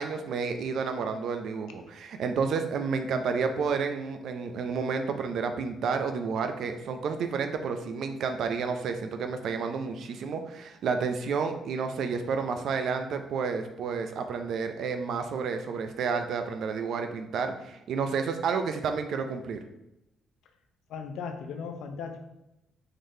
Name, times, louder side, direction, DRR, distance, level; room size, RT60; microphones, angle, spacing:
voice 1, 0.0-19.6, right 5 dB, 70° right, 7 dB, 0.4 m, -30 dB
voice 2, 20.9-22.2, left 5 dB, 85° left, 6 dB, 0.4 m, -37 dB
3.8 x 3.2 x 2.7 m, 0.90 s
cardioid pair, 90°, 0 cm